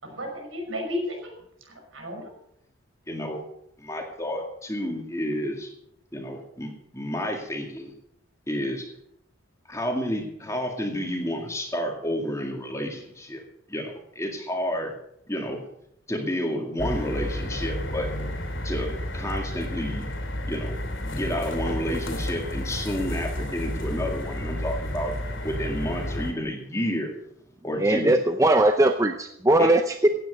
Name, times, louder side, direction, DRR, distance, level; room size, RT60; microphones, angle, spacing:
voice 1, 0.0-2.3, left 1 dB, 70° right, 2 dB, 6.0 m, -34 dB
voice 2, 3.1-3.4 3.8-5.7 6.1-7.9 8.5-8.9 9.7-13.4 13.7-14.9 15.3-15.6 16.1-18.1 18.6-20.1 20.4-25.1 25.4-27.1 27.6-28.1 29.6-29.7, equal, 15° left, 2 dB, 2.1 m, -30 dB
sound 1, 16.8-26.3, left 1 dB, 65° left, 2.9 m, -31 dB
voice 3, 27.8-30.1, right 1 dB, 15° right, 6 dB, 0.6 m, -20 dB
16.5 x 9.3 x 6.3 m, 0.76 s
head